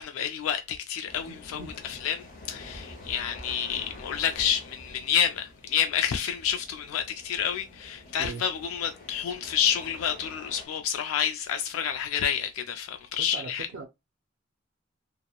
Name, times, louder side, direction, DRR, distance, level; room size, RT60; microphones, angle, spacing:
voice 1, 0.0-1.6 1.9-13.7, left 8 dB, 85° left, 0.3 m, -29 dB
sound 1, 1.0-10.7, left 2 dB, 45° left, 0.7 m, -47 dB
voice 2, 1.3-1.7 8.2-8.4 13.2-13.9, right 4 dB, 60° right, 0.4 m, -40 dB
2.8 x 2.0 x 2.2 m
head